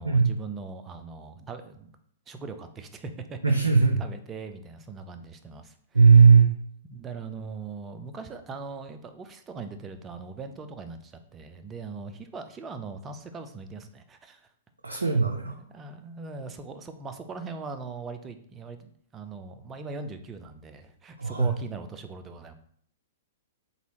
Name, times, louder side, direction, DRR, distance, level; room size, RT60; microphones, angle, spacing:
voice 1, 0.0-2.0 2.3-3.7 4.0-6.2 6.9-14.5 14.9-15.0 15.4-22.5, right 4 dB, 20° right, 8 dB, 0.5 m, -40 dB
voice 2, 3.4-4.0 5.9-6.5 14.8-15.5 21.2-21.5, right 5 dB, 85° right, 2 dB, 0.4 m, -18 dB
4.0 x 3.4 x 2.9 m, 0.62 s
figure-of-eight pair, 110°, 0 cm